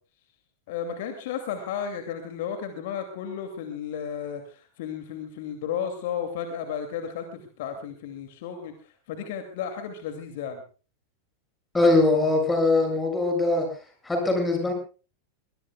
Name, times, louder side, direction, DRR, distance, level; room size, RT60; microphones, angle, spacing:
voice 1, 0.7-10.6, left 8 dB, 50° left, 6 dB, 2.6 m, -33 dB
voice 2, 11.7-13.7 14.0-14.7, left 2 dB, 10° left, 3 dB, 7.9 m, -21 dB
23.0 x 21.5 x 2.4 m, 0.37 s
figure-of-eight pair, 90°, 0 cm